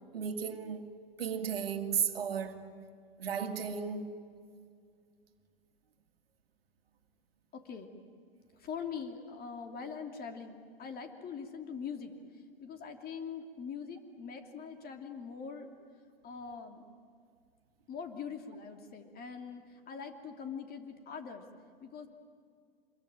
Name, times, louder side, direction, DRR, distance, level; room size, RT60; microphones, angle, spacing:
voice 1, 0.1-0.8 1.2-2.6 3.2-4.2, right 7 dB, 80° right, 2.0 m, -34 dB
voice 2, 7.5-7.9 8.6-12.1 12.6-15.7 16.2-16.9 17.9-21.4 21.8-22.1, left 6 dB, 30° left, 3.0 m, -43 dB
26.0 x 22.5 x 9.0 m
hypercardioid pair, 100°, 29 cm